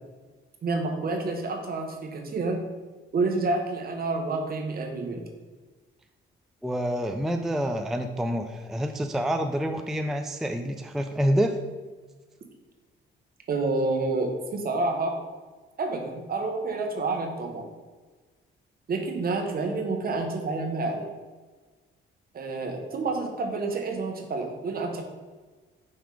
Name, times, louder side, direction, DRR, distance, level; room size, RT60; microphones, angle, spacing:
voice 1, 0.6-2.7 3.1-5.2 13.5-15.2 15.8-17.6 18.9-21.1 22.3-25.0, right 3 dB, 50° right, 4 dB, 1.1 m, -29 dB
voice 2, 6.6-11.6, equal, ahead, 6 dB, 0.4 m, -27 dB
5.7 x 3.5 x 4.9 m, 1.3 s
cardioid pair, 90°, 20 cm